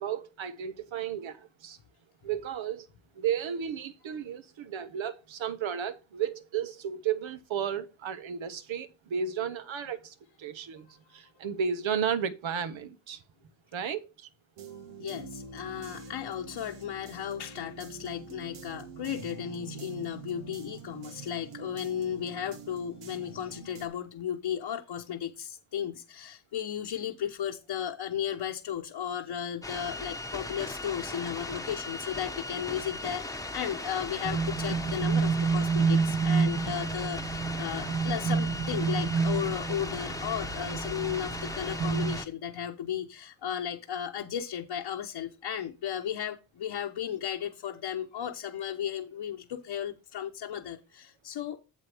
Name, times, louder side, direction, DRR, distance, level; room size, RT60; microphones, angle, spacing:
voice 1, 0.0-1.8 2.2-2.9 3.1-13.2 13.7-14.3, right 8 dB, 70° right, 1.2 m, -33 dB
sound 1, 14.6-23.9, right 5 dB, 85° right, 1.9 m, -45 dB
voice 2, 15.0-51.6, left 9 dB, 65° left, 1.2 m, -35 dB
sound 2, 29.6-42.3, left 2 dB, 5° left, 1.1 m, -38 dB
sound 3, 34.2-42.2, right 5 dB, 45° right, 1.3 m, -29 dB
8.7 x 7.3 x 3.5 m
cardioid pair, 85°, 48 cm